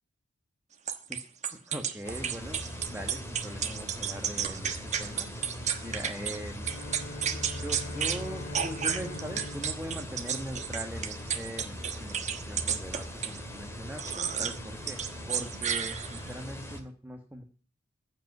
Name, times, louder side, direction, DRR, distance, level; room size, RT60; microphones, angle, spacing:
sound 1, 0.9-6.4 6.7-8.2 8.5-13.4 14.0-14.6 14.9-16.3, right 8 dB, 35° right, 1.2 m, -32 dB
voice 1, 1.5-2.6 2.9-5.4 5.8-6.7 7.3-17.4, equal, 10° right, 4 dB, 1.2 m, -41 dB
sound 2, 2.0-16.8, equal, 15° left, 2.2 m, -41 dB
Bowed string instrument, 6.5-11.4, left 3 dB, 45° left, 0.5 m, -44 dB
15.0 x 5.4 x 9.3 m, 0.41 s
head